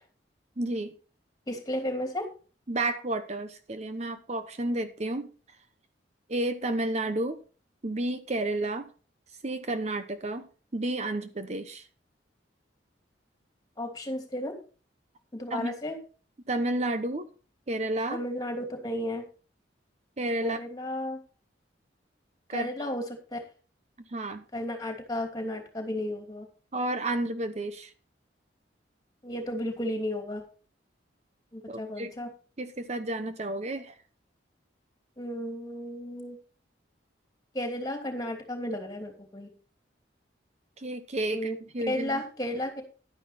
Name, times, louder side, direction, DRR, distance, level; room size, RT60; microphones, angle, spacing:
voice 1, 0.6-0.9 2.7-5.3 6.3-7.4 7.8-8.9 9.4-10.5 10.7-11.9 15.5-15.7 16.5-17.3 17.7-18.2 20.2-20.6 22.5-22.7 24.1-24.4 26.7-27.9 31.7-32.1 32.6-33.9 40.8-42.2, right 1 dB, 35° right, 10 dB, 0.8 m, -31 dB
voice 2, 1.5-2.3 13.8-14.6 15.3-15.9 18.1-19.3 20.4-21.2 22.5-23.4 24.5-26.5 29.2-30.4 31.5-32.3 35.2-36.4 37.5-39.5 41.3-41.6 41.9-42.8, left 1 dB, 20° left, 5 dB, 2.9 m, -33 dB
11.5 x 9.9 x 4.2 m, 0.37 s
head